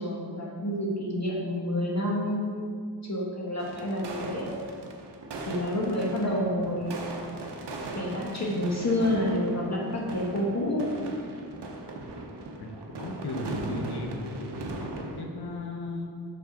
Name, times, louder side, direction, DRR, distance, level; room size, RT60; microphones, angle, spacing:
voice 1, 0.0-2.7 3.0-4.5 5.5-6.9 7.9-10.9, left 1 dB, 40° left, -3 dB, 1.1 m, -29 dB
sound 1, 3.6-15.2, right 2 dB, 85° right, 0.8 m, -39 dB
voice 2, 12.6-16.1, left 2 dB, 70° left, 1 dB, 1.0 m, -36 dB
6.3 x 5.4 x 3.8 m, 2.2 s
wide cardioid pair, 100°, 40 cm